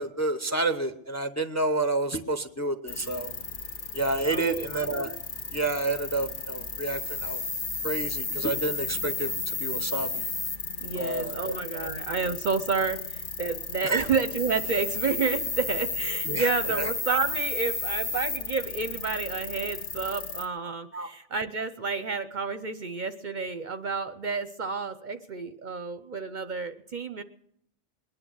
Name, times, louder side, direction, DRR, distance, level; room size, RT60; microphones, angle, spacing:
voice 1, 0.0-3.3 3.9-5.2 5.5-7.4 7.8-10.3 11.0-11.9 13.8-14.1 16.2-16.9 20.9-21.1, right 2 dB, 15° left, 9 dB, 0.7 m, -30 dB
sound 1, 2.9-20.5, left 4 dB, 45° left, 1.3 m, -33 dB
voice 2, 4.3-4.7 10.8-27.2, right 4 dB, 50° right, 11 dB, 0.7 m, -30 dB
21.0 x 10.5 x 6.3 m, 0.71 s
omnidirectional pair, 1.2 m